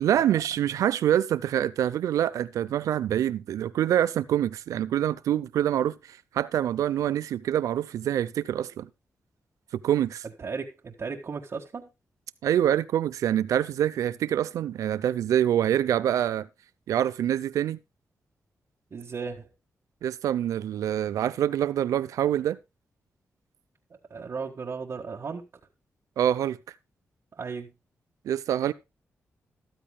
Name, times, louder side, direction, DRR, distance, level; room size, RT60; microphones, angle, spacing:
voice 1, 0.0-8.9 9.8-10.2 12.4-16.5 16.9-17.8 20.0-22.6 26.2-26.6 28.3-28.7, right 11 dB, 90° right, 0.5 m, -25 dB
voice 2, 10.4-11.9 18.9-19.5 24.1-25.5 27.3-27.7, right 5 dB, 55° right, 1.6 m, -35 dB
13.5 x 12.5 x 2.2 m
cardioid pair, 60°, 6 cm